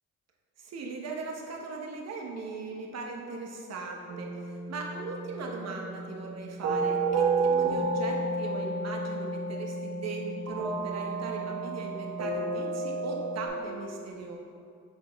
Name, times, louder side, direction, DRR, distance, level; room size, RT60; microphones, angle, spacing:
voice 1, 0.6-14.4, right 3 dB, 60° right, 1 dB, 1.1 m, -39 dB
sound 1, 4.1-13.5, right 3 dB, 80° right, 1.1 m, -31 dB
7.6 x 4.0 x 3.5 m, 2.4 s
cardioid pair, 90°, 30 cm